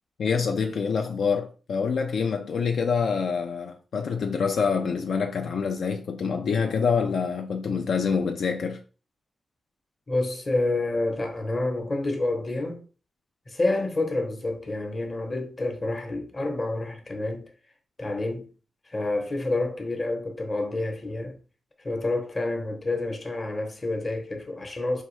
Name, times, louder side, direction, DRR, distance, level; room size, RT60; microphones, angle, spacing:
voice 1, 0.2-8.8, left 5 dB, 70° left, 0.3 m, -26 dB
voice 2, 10.1-12.8 13.5-17.5 18.0-18.5 18.9-21.4 21.8-25.0, left 2 dB, 25° left, 0.8 m, -28 dB
4.4 x 2.7 x 3.1 m
wide cardioid pair, 160°, 0 cm